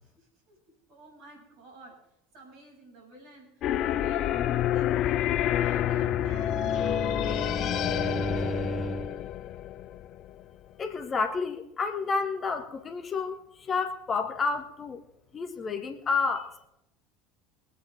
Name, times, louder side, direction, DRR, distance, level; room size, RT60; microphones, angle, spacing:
voice 1, 0.0-5.3 5.6-9.0, right 2 dB, 55° right, 0 dB, 6.2 m, -52 dB
sound 1, 3.6-10.4, left 11 dB, 45° left, 0.5 m, -28 dB
Bowed string instrument, 5.6-9.3, right 2 dB, 15° right, 0.4 m, -35 dB
voice 2, 10.8-13.4 13.7-15.0 15.3-16.7, left 4 dB, 30° left, 7 dB, 1.6 m, -30 dB
23.5 x 9.0 x 3.5 m, 0.84 s
figure-of-eight pair, 70°, 0 cm